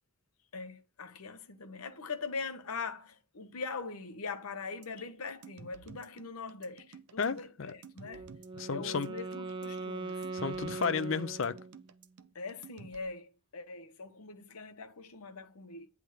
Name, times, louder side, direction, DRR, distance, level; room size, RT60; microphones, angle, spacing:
voice 1, 0.5-8.3 8.7-10.2 12.3-15.9, left 4 dB, 85° left, 0.9 m, -42 dB
sound 1, 4.8-13.0, right 5 dB, 85° right, 0.7 m, -53 dB
voice 2, 7.2-7.7 8.6-9.1 10.3-11.6, left 5 dB, 60° left, 0.5 m, -32 dB
Wind instrument woodwind instrument, 8.1-12.0, right 3 dB, 20° right, 0.3 m, -40 dB
9.2 x 3.5 x 6.3 m
head